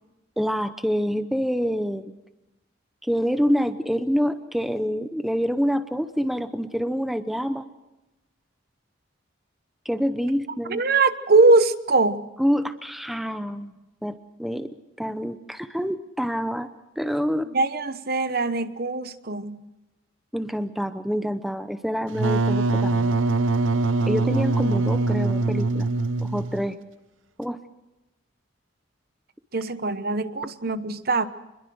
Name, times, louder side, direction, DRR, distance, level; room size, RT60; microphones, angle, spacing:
voice 1, 0.4-2.1 3.0-7.6 9.8-10.8 12.4-13.7 14.0-14.7 15.0-16.7 17.0-17.5 20.3-23.2 24.1-25.9 26.2-26.8 27.4-27.6, equal, ahead, 0.8 m, -26 dB
voice 2, 10.7-12.3 17.5-19.6 29.5-31.3, right 3 dB, 50° right, 1.0 m, -21 dB
Wind instrument woodwind instrument, 22.1-26.7, right 3 dB, 80° right, 0.8 m, -23 dB
27.0 x 22.0 x 6.3 m
head